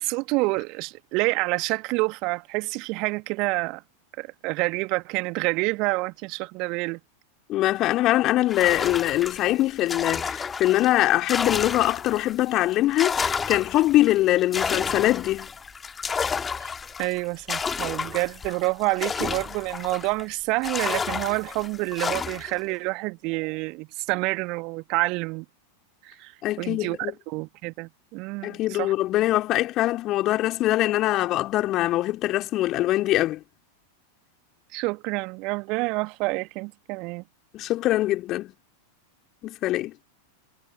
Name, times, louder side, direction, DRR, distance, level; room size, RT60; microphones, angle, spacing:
voice 1, 0.0-3.8 4.2-7.0 16.6-16.7 17.0-25.5 26.0-26.3 26.6-28.9 34.7-37.2, right 26 dB, 40° right, 2.0 m, -28 dB
voice 2, 7.5-15.5 26.4-27.1 28.4-33.4 37.5-38.5 39.4-39.9, left 16 dB, 35° left, 3.3 m, -23 dB
sound 1, 8.5-12.3 12.7-20.2 20.6-22.6, left 5 dB, 15° left, 1.9 m, -31 dB
figure-of-eight pair, 90°, 0 cm